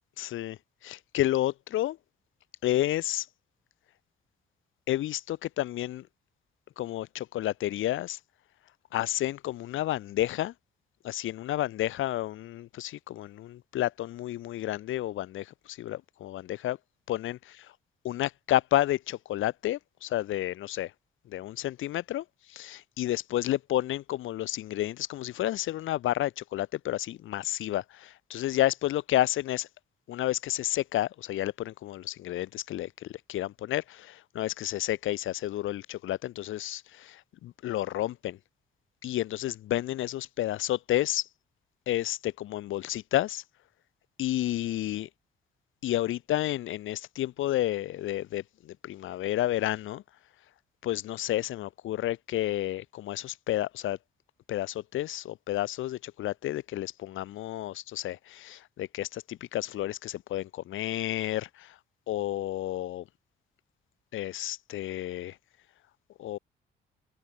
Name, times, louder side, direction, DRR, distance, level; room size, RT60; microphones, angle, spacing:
voice 1, 0.2-2.0 2.6-3.3 4.9-6.1 6.8-8.2 8.9-10.5 11.0-16.8 17.1-17.4 18.0-20.9 21.3-29.7 30.1-38.4 39.0-41.3 41.9-43.4 44.2-45.1 45.8-50.0 50.8-54.0 54.5-61.8 62.1-63.0 64.1-65.4 66.2-66.4, left 14 dB, 85° left, 4.7 m, -31 dB
open air
cardioid pair, 90°, 20 cm